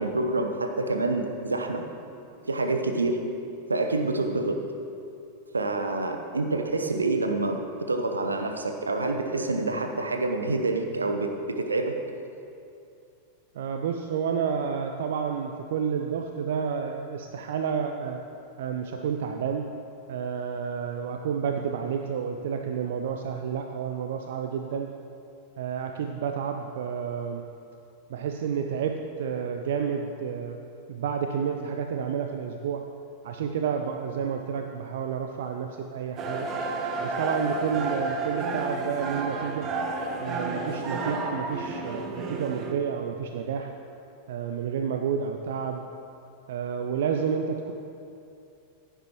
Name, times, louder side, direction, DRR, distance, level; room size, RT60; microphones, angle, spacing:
voice 1, 0.0-1.8 2.4-3.2 3.7-4.6 5.5-7.6 7.9-11.9, right 2 dB, 75° right, 4 dB, 1.0 m, -27 dB
voice 2, 13.5-18.2 18.6-19.6 20.1-24.9 25.6-27.4 28.1-30.6 30.9-32.8 33.2-36.5 37.0-39.7 40.2-43.7 44.3-45.8 46.5-47.7, right 7 dB, 55° right, 4 dB, 0.6 m, -30 dB
sound 1, 36.2-42.7, right 3 dB, 30° right, 1.2 m, -31 dB
15.5 x 10.0 x 3.0 m, 2.6 s
figure-of-eight pair, 90°, 0 cm